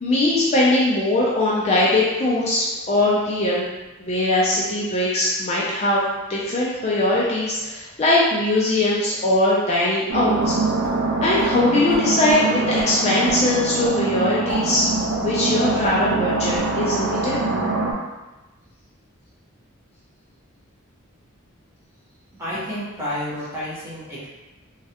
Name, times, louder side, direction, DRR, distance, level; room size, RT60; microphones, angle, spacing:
voice 1, 0.0-3.6 4.0-6.0 6.3-10.5 11.2-14.9 15.2-17.4, left 2 dB, 30° left, -6 dB, 0.4 m, -20 dB
sound 1, 10.1-17.9, right 3 dB, 75° right, 0.5 m, -24 dB
sound 2, 10.4-11.0 11.4-11.5 11.9-12.4 12.8-12.9 13.2-13.4 13.8-14.0 14.3-15.6 15.8-16.0 16.3-16.7, equal, 55° right, 1.1 m, -32 dB
voice 2, 22.4-24.2, equal, 10° right, -9 dB, 0.9 m, -30 dB
3.1 x 2.4 x 2.8 m, 1.1 s
head